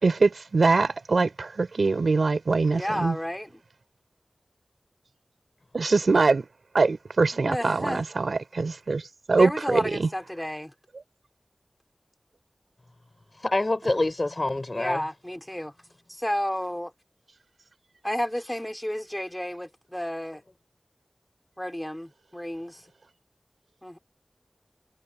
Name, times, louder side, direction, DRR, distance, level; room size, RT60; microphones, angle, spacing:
voice 1, 0.0-3.2 5.7-6.5 6.7-9.0 9.3-10.1, right 3 dB, 90° right, 3.6 m, -23 dB
voice 2, 2.7-3.5 7.3-8.0 9.4-10.7 14.7-15.7 16.1-16.9 18.0-20.4 21.6-22.8 23.8-24.0, equal, 10° left, 3.7 m, -31 dB
voice 3, 13.3-15.0, left 2 dB, 45° left, 3.8 m, -26 dB
wide cardioid pair, 50°, 0 cm